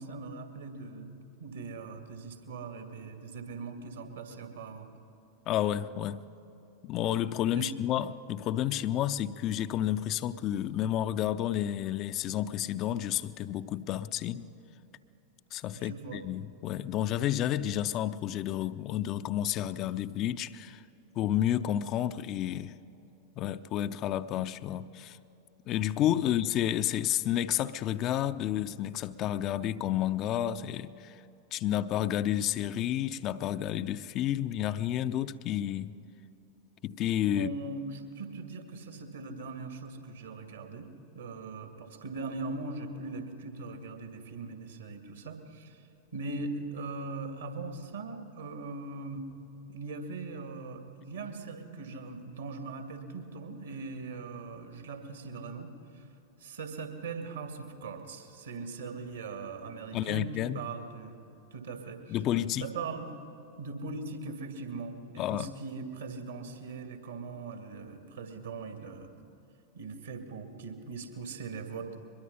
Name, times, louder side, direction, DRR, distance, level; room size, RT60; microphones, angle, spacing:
voice 1, 0.0-4.9 7.5-7.7 14.7-14.9 15.7-16.2 26.2-26.3 37.3-40.9 41.1-45.8 46.1-49.3 49.7-56.0 56.4-61.2 61.5-62.2 62.6-63.1 63.6-69.3 69.7-72.0, right 3 dB, 70° right, 2.2 m, -40 dB
voice 2, 5.5-6.2 6.8-14.5 15.5-20.8 21.2-22.8 23.4-25.2 25.7-31.2 31.5-36.0 36.8-37.5 59.9-60.6 62.1-62.7 65.2-65.5, left 11 dB, 35° left, 0.5 m, -30 dB
22.5 x 21.5 x 5.6 m
figure-of-eight pair, 90°, 0 cm